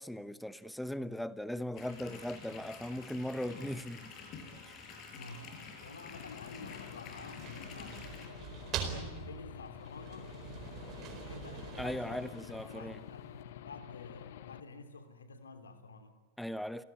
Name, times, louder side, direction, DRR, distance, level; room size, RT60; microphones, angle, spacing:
voice 1, 0.0-4.1 4.7-4.9 11.8-13.0 16.4-16.8, left 1 dB, ahead, 1.0 m, -39 dB
sound 1, 1.8-8.3, left 5 dB, 35° left, 5.8 m, -49 dB
voice 2, 5.1-10.4 10.9-16.2, left 3 dB, 70° left, 3.0 m, -50 dB
Aircraft / Engine, 6.1-14.6, left 12 dB, 55° left, 0.9 m, -49 dB
sound 2, 7.0-13.1, right 7 dB, 35° right, 4.4 m, -44 dB
29.5 x 17.5 x 9.7 m
figure-of-eight pair, 90°, 0 cm